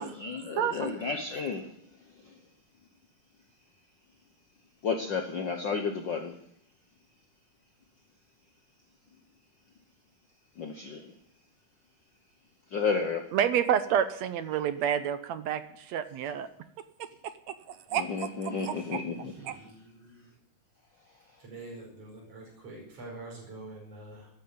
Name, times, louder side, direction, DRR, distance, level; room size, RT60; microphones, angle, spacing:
voice 1, 0.0-1.7 2.2-2.3 4.8-6.3 10.6-11.1 12.7-13.3 17.9-19.3, left 5 dB, 75° left, 6 dB, 1.0 m, -32 dB
voice 2, 0.6-1.0 13.3-16.5 17.7-18.3 18.7-18.8 19.5-19.6, right 9 dB, 70° right, 12 dB, 1.8 m, -29 dB
voice 3, 18.4-20.3 21.4-24.3, right 2 dB, 45° right, -2 dB, 6.1 m, -46 dB
14.0 x 11.0 x 8.6 m, 0.69 s
omnidirectional pair, 3.7 m